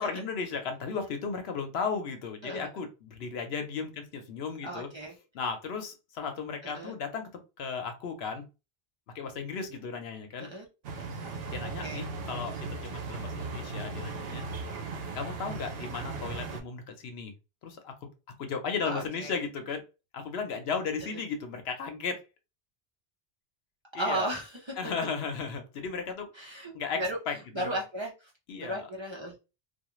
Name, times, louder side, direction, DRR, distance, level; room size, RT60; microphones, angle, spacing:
voice 1, 0.0-4.9 5.3-8.4 9.1-10.5 11.5-14.4 15.1-17.3 17.6-18.1 18.4-19.8 20.1-22.2 23.9-24.3 24.8-26.3 26.7-27.7 28.5-28.9, left 5 dB, 80° left, 6 dB, 0.9 m, -35 dB
voice 2, 4.6-5.1 6.6-6.9 10.4-10.7 11.8-12.0 18.9-19.3 24.0-24.7 26.3-27.2 27.5-28.3 28.6-29.4, right 1 dB, 35° right, -2 dB, 0.6 m, -35 dB
sound 1, 10.8-16.6, right 3 dB, 75° right, 0.8 m, -37 dB
2.3 x 2.3 x 3.0 m, 0.28 s
omnidirectional pair, 1.0 m